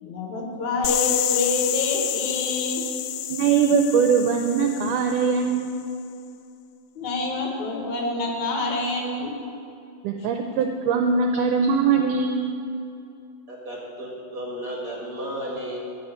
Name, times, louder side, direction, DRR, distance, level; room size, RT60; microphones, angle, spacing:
voice 1, 0.0-2.8 7.0-9.3, left 2 dB, 65° left, 0 dB, 2.5 m, -27 dB
sound 1, 0.8-5.6, left 12 dB, 90° left, 2.3 m, -28 dB
voice 2, 3.3-5.8 10.0-12.5, right 5 dB, 80° right, 5 dB, 2.0 m, -21 dB
voice 3, 13.5-15.8, right 1 dB, 35° right, -3 dB, 1.6 m, -33 dB
13.5 x 5.0 x 8.6 m, 2.5 s
omnidirectional pair, 3.9 m